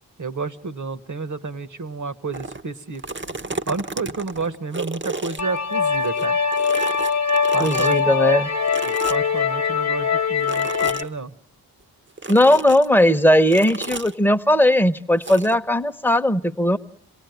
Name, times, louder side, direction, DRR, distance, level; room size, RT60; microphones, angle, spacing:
voice 1, 0.2-3.0 3.7-6.4 7.5-8.1 8.8-11.3, right 4 dB, 45° right, 12 dB, 1.2 m, -30 dB
sound 1, 2.3-2.6 2.9-6.3 6.5-8.0 8.7-9.4 10.4-11.1 12.2-12.9 13.5-14.1 15.2-15.5, right 3 dB, 30° right, 0.9 m, -32 dB
sound 2, 5.4-11.0, left 5 dB, 40° left, 1.1 m, -22 dB
voice 2, 7.6-8.5 12.3-16.8, left 1 dB, 5° left, 8 dB, 0.9 m, -18 dB
27.5 x 18.0 x 9.3 m, 0.72 s
cardioid pair, 55°, 40 cm